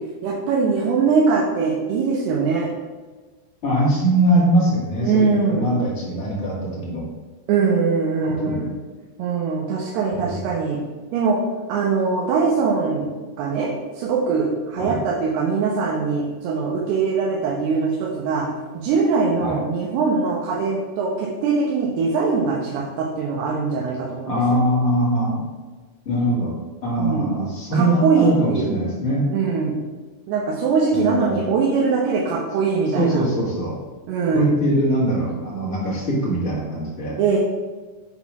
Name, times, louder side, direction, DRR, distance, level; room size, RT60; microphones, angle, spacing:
voice 1, 0.2-2.7 5.0-5.7 7.5-8.7 9.2-10.8 11.1-11.4 11.7-13.1 13.4-13.7 14.0-18.5 18.7-24.6 27.0-27.4 27.7-28.7 29.3-29.8 30.3-33.2 34.1-34.5 37.2-37.4, right 5 dB, 85° right, -2 dB, 3.0 m, -22 dB
voice 2, 3.6-7.0 8.4-8.7 10.2-10.5 14.8-15.0 19.4-19.6 24.3-25.4 26.0-26.5 26.8-29.3 30.9-31.4 32.9-33.7 34.3-37.2, right 1 dB, 20° left, -6 dB, 2.0 m, -22 dB
7.9 x 4.2 x 5.8 m, 1.3 s
omnidirectional pair, 4.5 m